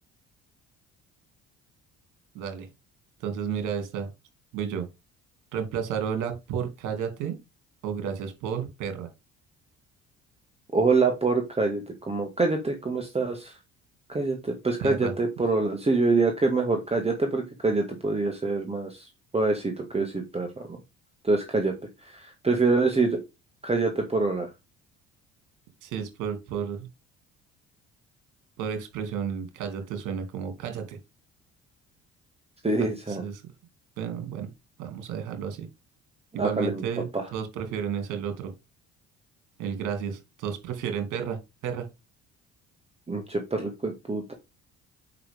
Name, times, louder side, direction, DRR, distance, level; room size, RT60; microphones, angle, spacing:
voice 1, 2.3-2.7 3.2-4.1 4.5-4.9 5.5-7.4 7.8-9.1 14.8-15.1 25.8-26.9 28.6-31.0 32.8-33.4 34.0-34.5 34.8-35.7 36.3-38.5 39.6-41.9, right 7 dB, 75° right, 6 dB, 2.6 m, -32 dB
voice 2, 10.7-13.5 14.1-19.0 19.3-20.5 21.2-21.7 22.1-23.2 23.6-24.5 32.6-33.2 36.4-36.8 37.1-37.2 43.1-44.3, right 3 dB, 20° right, 4 dB, 2.0 m, -25 dB
7.9 x 5.6 x 3.6 m, 0.24 s
supercardioid pair, 70°, 31 cm